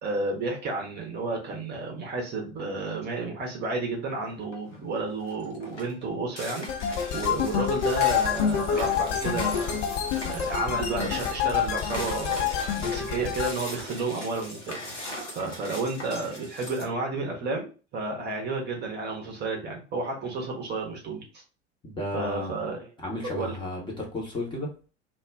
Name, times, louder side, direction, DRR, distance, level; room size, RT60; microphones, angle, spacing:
voice 1, 0.0-9.8 10.3-14.8 15.3-21.4 22.1-22.9 23.4-23.6, right 3 dB, 30° right, 1 dB, 0.7 m, -31 dB
sound 1, 4.4-4.8 5.2-16.8, left 1 dB, 80° left, 0.8 m, -39 dB
sound 2, 6.7-13.5, left 8 dB, 35° left, 0.4 m, -27 dB
voice 2, 21.8-22.5 23.0-24.7, left 1 dB, 15° left, -2 dB, 0.8 m, -33 dB
2.4 x 2.1 x 3.3 m, 0.35 s
figure-of-eight pair, 75°, 36 cm